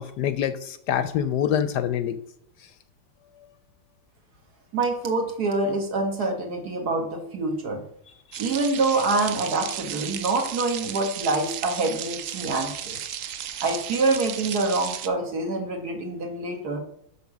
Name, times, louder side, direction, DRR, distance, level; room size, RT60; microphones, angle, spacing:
voice 1, 0.0-2.2 8.3-8.4, left 9 dB, 70° left, 12 dB, 1.1 m, -25 dB
voice 2, 4.7-7.8 8.4-13.1 13.6-16.8, right 3 dB, 55° right, 3 dB, 1.9 m, -26 dB
sound 1, 8.3-15.1, right 10 dB, 85° right, 0.7 m, -34 dB
7.0 x 6.2 x 6.0 m, 0.72 s
omnidirectional pair, 2.1 m